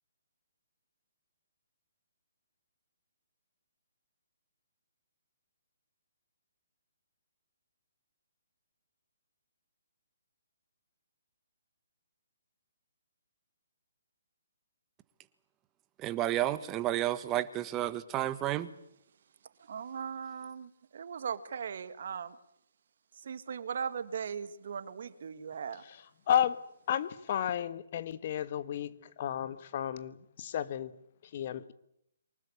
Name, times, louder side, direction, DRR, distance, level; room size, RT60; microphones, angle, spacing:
voice 1, 16.0-18.7, right 13 dB, 20° right, 13 dB, 1.4 m, -31 dB
voice 2, 19.6-22.4 23.1-25.8, right 7 dB, 60° right, 12 dB, 1.9 m, -39 dB
voice 3, 26.3-26.6 26.9-30.9 31.3-31.7, left 10 dB, 45° left, 14 dB, 1.3 m, -32 dB
24.0 x 20.0 x 8.6 m, 0.74 s
hypercardioid pair, 140°, 0 cm